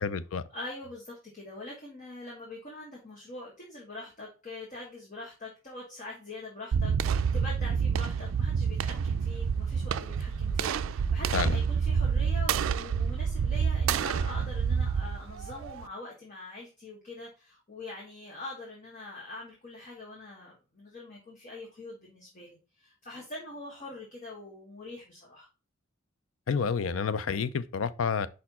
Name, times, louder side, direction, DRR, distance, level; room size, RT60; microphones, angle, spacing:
voice 1, 0.0-0.4 11.3-11.6 26.5-28.3, left 5 dB, 75° left, 0.4 m, -29 dB
voice 2, 0.5-25.5, left 2 dB, 35° left, 1.4 m, -44 dB
sound 1, 6.7-15.9, right 6 dB, 70° right, 0.3 m, -28 dB
5.1 x 4.4 x 4.1 m
head